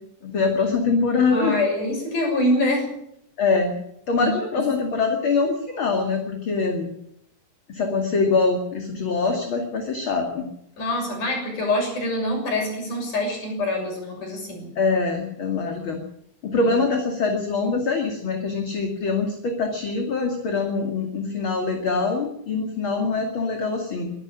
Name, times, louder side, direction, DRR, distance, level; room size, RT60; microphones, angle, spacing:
voice 1, 0.2-1.6 3.4-3.7 4.1-6.9 7.7-10.5 14.8-16.0 16.4-24.1, left 4 dB, 40° left, 3 dB, 2.8 m, -24 dB
voice 2, 1.3-2.9 4.2-4.3 10.8-14.7 16.6-16.8, left 1 dB, 60° left, 2 dB, 8.2 m, -25 dB
23.5 x 12.5 x 8.8 m, 0.77 s
omnidirectional pair, 4.1 m